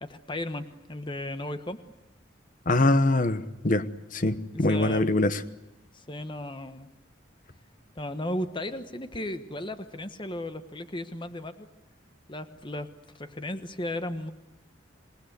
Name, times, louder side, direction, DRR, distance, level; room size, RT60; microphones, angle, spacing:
voice 1, 0.0-1.8 4.7-5.1 5.9-6.9 7.9-11.7 12.3-12.9 13.2-14.3, left 1 dB, 25° left, 1.2 m, -35 dB
voice 2, 2.7-3.8 4.1-5.4, left 2 dB, 45° left, 1.1 m, -23 dB
27.0 x 19.5 x 9.5 m
head